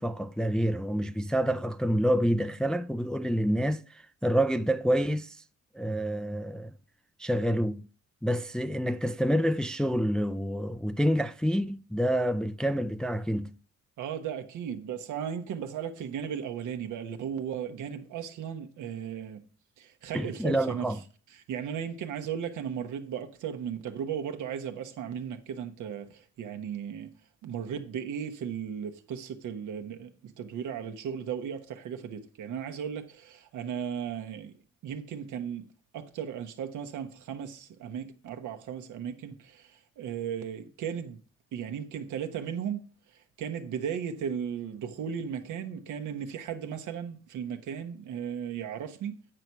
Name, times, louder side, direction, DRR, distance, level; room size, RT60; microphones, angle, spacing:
voice 1, 0.0-5.4 5.7-6.7 7.2-7.8 8.2-13.5 20.1-21.0, equal, 5° left, 0.3 m, -28 dB
voice 2, 14.0-19.4 19.8-20.9 21.3-27.1 27.4-34.5 34.8-35.7 35.9-41.2 41.5-42.8 43.4-49.1, right 8 dB, 80° right, 1.1 m, -36 dB
9.0 x 4.6 x 5.4 m
cardioid pair, 90°, 30 cm